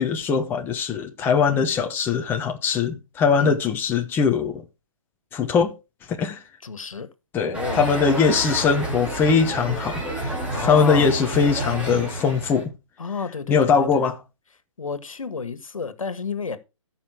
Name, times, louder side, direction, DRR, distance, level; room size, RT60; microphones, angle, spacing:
voice 1, 0.0-4.6 5.3-5.7 6.1-6.4 7.3-12.7 13.5-14.2, left 5 dB, 10° left, 1.0 m, -21 dB
voice 2, 6.6-7.1 7.4-7.9 10.5-11.1 13.0-14.1 14.8-16.6, left 5 dB, 80° left, 1.7 m, -31 dB
sound 1, 7.5-12.6, right 1 dB, 10° right, 2.8 m, -29 dB
14.0 x 5.5 x 4.5 m
hypercardioid pair, 145°, 17 cm